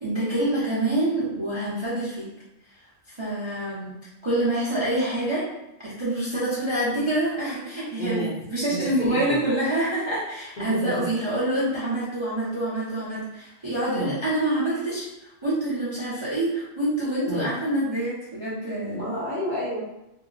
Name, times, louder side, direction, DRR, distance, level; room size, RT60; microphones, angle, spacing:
voice 1, 0.0-2.3 3.1-3.9 4.2-5.4 5.8-19.0, right 1 dB, 30° right, -9 dB, 0.6 m, -26 dB
voice 2, 8.0-8.3 8.7-9.4 10.6-10.9 13.9-14.2 17.3-17.5 18.9-19.8, equal, 45° left, -8 dB, 0.8 m, -30 dB
2.6 x 2.1 x 3.9 m, 0.91 s
omnidirectional pair, 1.4 m